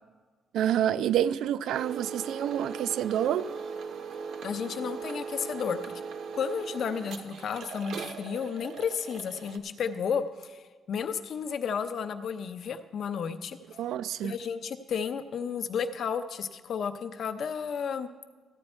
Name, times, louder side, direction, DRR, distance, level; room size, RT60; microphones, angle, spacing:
voice 1, 0.5-3.5 13.8-14.4, right 10 dB, 75° right, 0.4 m, -28 dB
sound 1, 1.7-9.6, right 5 dB, 60° right, 0.8 m, -39 dB
voice 2, 4.4-5.9 6.3-13.6 14.2-18.1, left 6 dB, 50° left, 0.6 m, -32 dB
14.5 x 8.8 x 4.4 m
cardioid pair, 170°, 0 cm